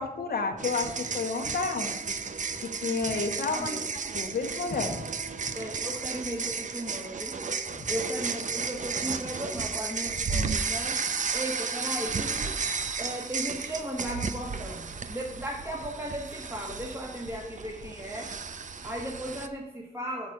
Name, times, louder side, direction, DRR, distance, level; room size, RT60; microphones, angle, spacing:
voice 1, 0.0-2.2 2.6-3.7 4.1-5.0 7.7-7.9, left 4 dB, 75° left, 3 dB, 1.0 m, -31 dB
sound 1, 0.6-19.5, right 5 dB, 50° right, 0.6 m, -33 dB
voice 2, 3.5-3.8 5.5-7.4 7.9-11.0 11.3-12.6 13.0-18.3 18.8-20.3, equal, 15° right, -3 dB, 1.6 m, -36 dB
6.8 x 5.2 x 6.0 m, 0.99 s
cardioid pair, 60°, 16 cm